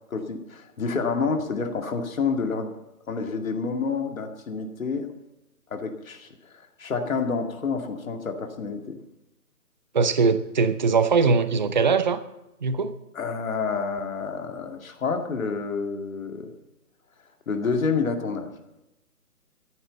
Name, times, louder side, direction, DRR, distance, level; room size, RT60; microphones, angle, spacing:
voice 1, 0.1-2.7 3.1-5.1 5.7-9.0 13.1-16.5 17.5-18.5, left 5 dB, 60° left, 4 dB, 2.4 m, -28 dB
voice 2, 9.9-12.2 12.6-12.9, right 5 dB, 30° right, 13 dB, 0.6 m, -21 dB
14.0 x 8.9 x 8.1 m, 0.93 s
figure-of-eight pair, 145°, 47 cm